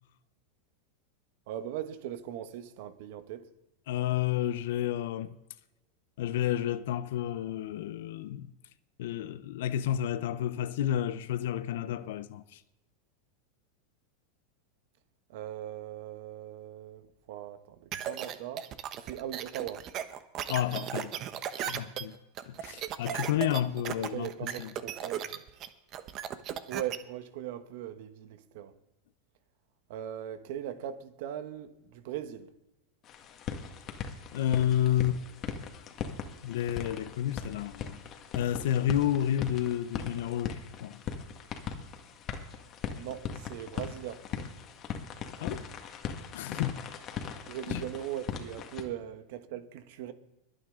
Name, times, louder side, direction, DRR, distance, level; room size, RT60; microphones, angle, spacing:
voice 1, 1.5-3.4 15.3-18.6 19.0-19.8 24.1-25.4 26.7-28.7 29.9-32.5 42.9-44.2 47.5-50.1, right 11 dB, 65° right, 1.2 m, -39 dB
voice 2, 3.9-5.4 6.2-8.5 9.0-12.6 20.5-21.1 21.5-22.2 22.5-24.7 34.3-35.2 36.4-38.0 38.3-41.0 45.4-45.7 46.3-46.8 47.7-47.8, left 11 dB, 75° left, 0.8 m, -30 dB
sound 1, 17.9-27.0, right 10 dB, 40° right, 1.0 m, -36 dB
sound 2, 33.0-48.8, left 7 dB, 35° left, 1.8 m, -40 dB
22.0 x 8.9 x 3.8 m
supercardioid pair, 130°, 0 cm